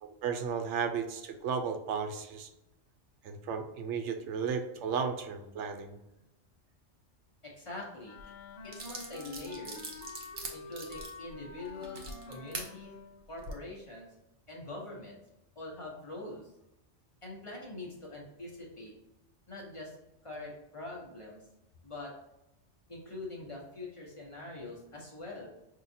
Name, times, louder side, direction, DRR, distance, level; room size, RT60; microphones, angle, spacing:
voice 1, 0.0-2.5 3.2-6.0, right 6 dB, 90° right, 6 dB, 0.9 m, -34 dB
voice 2, 7.4-8.2 8.6-9.9 10.5-12.9 13.3-14.1 14.5-15.2 15.5-16.5 17.2-18.9 19.5-20.0 20.2-21.4 21.8-22.1 22.9-25.5, left 2 dB, 30° left, -3 dB, 1.1 m, -44 dB
Wind instrument woodwind instrument, 8.0-13.3, left 4 dB, 50° left, 0.8 m, -48 dB
sound 1, 8.2-8.3 8.7-12.7 13.3-13.5, right 3 dB, 60° right, 1.0 m, -42 dB
5.6 x 2.8 x 2.7 m, 0.91 s
omnidirectional pair, 1.2 m